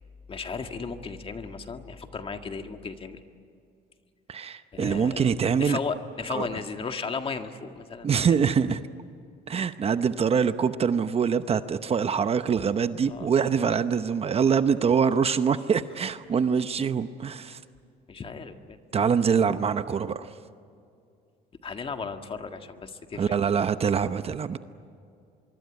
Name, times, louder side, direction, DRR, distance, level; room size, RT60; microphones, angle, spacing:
voice 1, 0.3-3.2 4.7-8.6 13.1-13.3 18.1-18.8 21.6-23.4, left 5 dB, 35° left, 6 dB, 1.8 m, -35 dB
voice 2, 4.3-5.8 6.3-6.5 8.0-8.8 9.5-17.6 18.9-20.4 23.2-24.6, right 6 dB, 35° right, 11 dB, 0.8 m, -24 dB
25.0 x 23.0 x 9.6 m, 2.4 s
cardioid pair, 110°, 17 cm